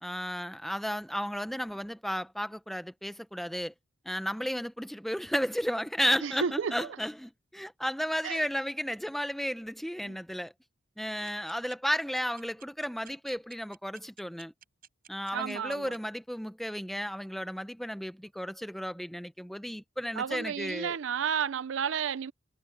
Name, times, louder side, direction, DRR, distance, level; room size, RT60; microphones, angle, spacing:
voice 1, 0.0-3.7 4.0-10.5 11.0-14.5 15.1-21.0, equal, ahead, 0.8 m, -33 dB
voice 2, 6.2-6.9 8.2-8.5 10.0-10.2 11.2-11.3 15.3-15.9 20.2-22.3, right 7 dB, 75° right, 0.5 m, -32 dB
sound 1, 11.3-16.0, right 10 dB, 45° right, 7.4 m, -52 dB
head